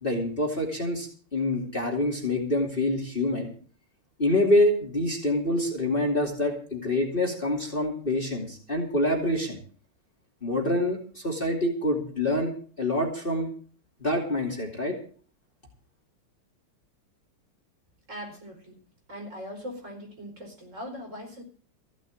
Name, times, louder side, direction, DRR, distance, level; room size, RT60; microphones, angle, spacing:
voice 1, 0.0-3.5 4.2-9.6 10.4-12.5 12.8-13.5 14.0-14.9, left 1 dB, 25° left, -1 dB, 2.8 m, -26 dB
voice 2, 18.1-18.8 19.1-21.4, equal, 35° right, 2 dB, 5.0 m, -40 dB
15.5 x 6.1 x 9.2 m, 0.43 s
omnidirectional pair, 2.4 m